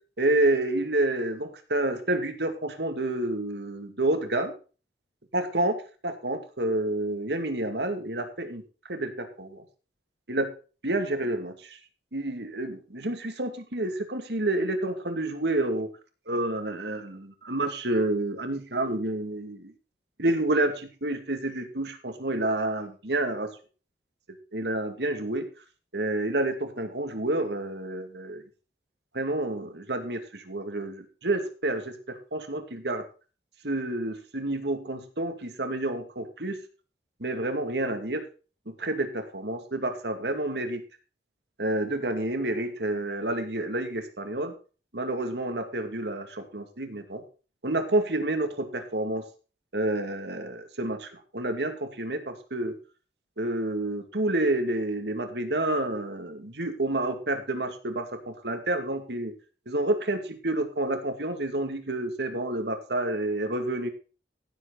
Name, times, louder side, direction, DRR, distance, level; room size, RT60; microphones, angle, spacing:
voice 1, 0.2-4.5 5.3-5.8 6.0-8.6 8.9-9.6 10.3-10.5 10.8-11.8 12.1-15.9 16.3-19.7 20.2-23.5 24.5-25.5 25.9-28.4 29.1-33.0 33.6-36.6 37.2-38.2 38.7-40.8 41.6-44.5 44.9-47.2 47.6-49.2 49.7-52.8 53.4-59.3 59.7-63.9, right 2 dB, 70° right, 7 dB, 2.4 m, -29 dB
16.0 x 8.0 x 4.0 m, 0.35 s
head